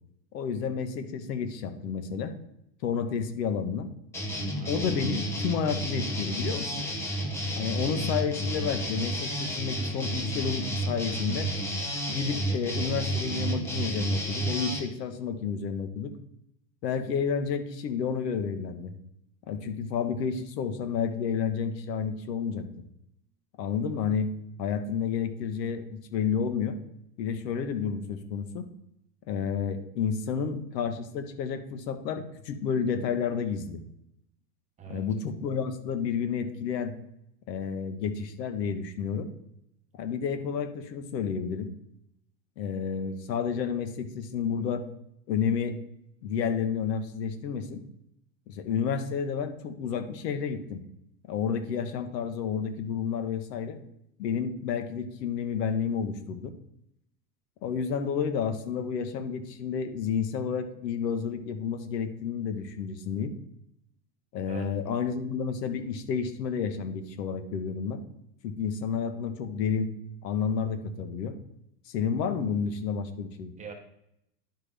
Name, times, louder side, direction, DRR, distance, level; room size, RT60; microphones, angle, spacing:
voice 1, 0.3-2.4 2.8-3.9 4.6-6.7 7.6-11.5 12.1-16.2 16.8-18.9 19.5-22.7 23.6-24.3 24.6-26.8 27.2-28.7 29.3-33.8 34.9-37.0 37.5-39.3 40.0-41.7 42.6-44.8 45.3-45.8 46.2-47.8 48.5-50.8 51.3-53.8 54.2-56.5 57.6-63.4 64.3-68.0 68.4-69.9 70.2-71.4 71.9-73.5, left 6 dB, 75° left, 8 dB, 1.5 m, -30 dB
sound 1, 4.1-14.8, right 1 dB, 5° left, 0.4 m, -31 dB
voice 2, 4.4-4.7 34.8-35.0 64.5-64.7 73.6-73.7, right 6 dB, 15° right, 2 dB, 0.9 m, -41 dB
11.0 x 5.9 x 3.5 m, 0.77 s
supercardioid pair, 155°, 50 cm